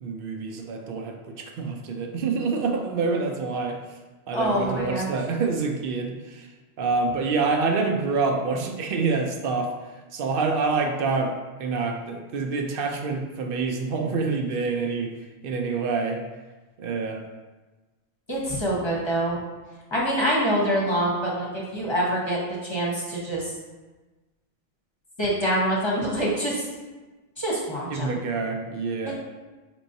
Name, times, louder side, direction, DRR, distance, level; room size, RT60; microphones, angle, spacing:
voice 1, 0.0-3.8 4.3-6.5 6.8-15.1 15.4-16.2 16.8-17.2 27.9-29.1, right 4 dB, 65° right, 3 dB, 0.7 m, -27 dB
voice 2, 4.3-5.1 18.3-19.4 19.9-23.4 25.2-26.6 27.4-28.1, right 1 dB, 30° left, -5 dB, 0.8 m, -25 dB
5.2 x 3.0 x 2.7 m, 1.2 s
omnidirectional pair, 1.1 m